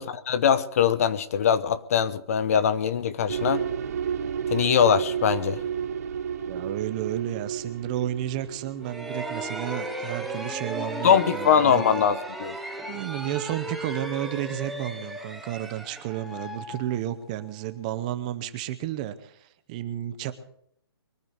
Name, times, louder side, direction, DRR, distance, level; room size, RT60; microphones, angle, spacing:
voice 1, 0.0-3.7 4.5-5.6 11.0-12.6, left 8 dB, 35° left, 0.9 m, -22 dB
sound 1, 3.3-10.4, right 8 dB, 40° right, 1.1 m, -32 dB
voice 2, 6.5-12.0 12.9-20.3, right 12 dB, 20° right, 0.7 m, -32 dB
sound 2, 8.8-17.5, right 1 dB, ahead, 1.0 m, -35 dB
23.0 x 9.2 x 6.5 m
hypercardioid pair, 170°, 14 cm